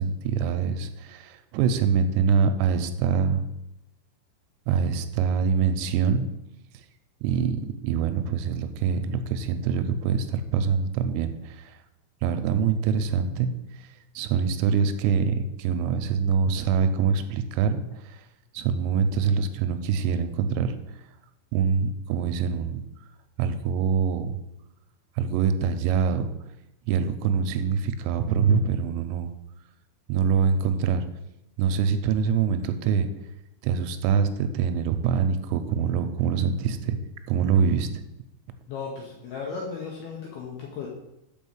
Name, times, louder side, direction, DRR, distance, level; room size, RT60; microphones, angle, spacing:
voice 1, 0.0-3.4 4.7-6.3 7.2-11.7 12.2-13.5 14.2-17.8 18.5-20.7 21.5-22.8 23.4-24.4 25.2-26.3 26.9-29.3 30.1-31.0 31.6-33.1 33.6-37.0 37.3-38.0, right 6 dB, 85° right, 9 dB, 3.2 m, -24 dB
voice 2, 38.7-40.9, left 5 dB, 80° left, -2 dB, 2.3 m, -35 dB
6.3 x 5.6 x 7.2 m, 0.89 s
omnidirectional pair, 5.9 m